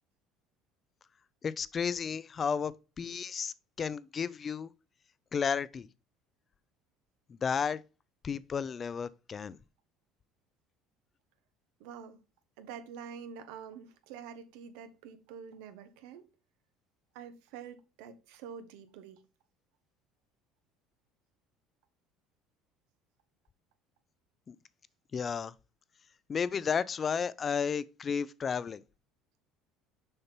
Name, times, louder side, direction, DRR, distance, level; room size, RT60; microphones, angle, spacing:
voice 1, 1.4-4.7 5.3-5.9 7.3-7.8 8.2-9.6 24.5-24.6 25.1-25.5 26.3-28.8, left 6 dB, 30° left, 0.5 m, -33 dB
voice 2, 11.8-12.2 12.6-16.3 17.1-19.2, right 7 dB, 85° right, 1.2 m, -47 dB
6.6 x 5.7 x 4.4 m
cardioid pair, 140°, 0 cm